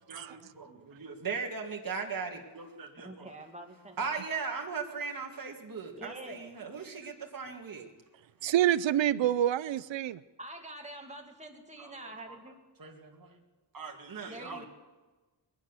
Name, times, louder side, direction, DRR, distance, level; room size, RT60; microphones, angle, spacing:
voice 1, 0.1-3.3 4.0-7.8 11.8-12.4 12.8-13.4 13.7-14.7, right 5 dB, 50° right, 1 dB, 1.9 m, -38 dB
voice 2, 3.0-4.1 6.0-6.5 10.4-12.6 14.3-14.7, right 1 dB, 15° right, 2 dB, 2.3 m, -46 dB
voice 3, 8.4-10.2, right 11 dB, 90° right, 17 dB, 0.5 m, -27 dB
21.5 x 9.7 x 6.9 m, 1.2 s
wide cardioid pair, 85°, 44 cm